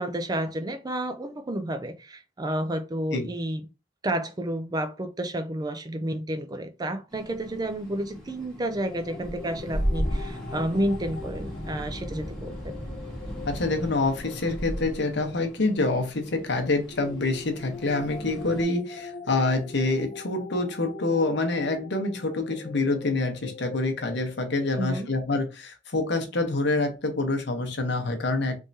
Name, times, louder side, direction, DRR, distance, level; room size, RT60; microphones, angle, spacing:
voice 1, 0.0-3.6 4.0-12.8 24.7-25.1, right 1 dB, 20° right, 0.4 m, -30 dB
sound 1, 7.1-18.6, equal, 5° left, 1.5 m, -36 dB
sound 2, 8.9-16.0 16.9-25.4, left 4 dB, 35° left, 0.6 m, -43 dB
voice 2, 13.5-28.5, left 2 dB, 65° left, 0.9 m, -26 dB
3.5 x 3.2 x 2.7 m
head